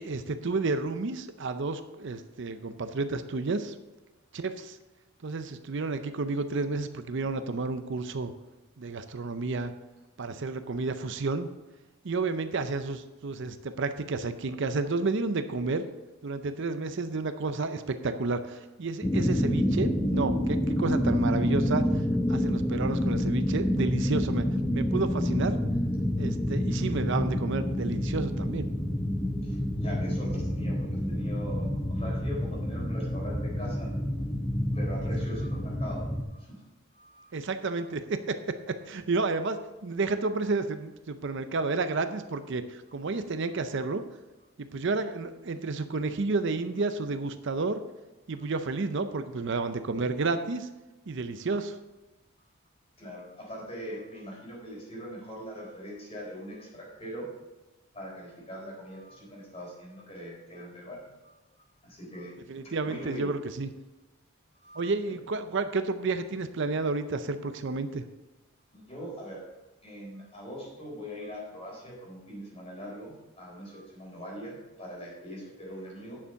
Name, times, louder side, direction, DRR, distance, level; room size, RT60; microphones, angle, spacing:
voice 1, 0.0-3.8 4.3-4.8 5.2-8.3 8.8-9.7 10.2-11.5 12.0-15.9 16.2-21.8 22.3-25.6 26.2-28.7 37.3-44.0 44.6-47.8 48.3-50.7 51.1-51.8 62.5-63.7 64.7-68.0, right 3 dB, 55° right, 10 dB, 0.6 m, -31 dB
sound 1, 19.0-36.2, equal, 10° left, 0.8 m, -28 dB
voice 2, 29.4-33.9 34.7-36.6 36.9-37.3 37.7-37.8 53.0-57.3 57.9-61.3 61.8-62.4 62.6-63.3 64.6-65.2 68.7-69.4 69.8-76.2, equal, 30° left, -3 dB, 4.0 m, -41 dB
9.8 x 6.9 x 5.7 m, 1.1 s
head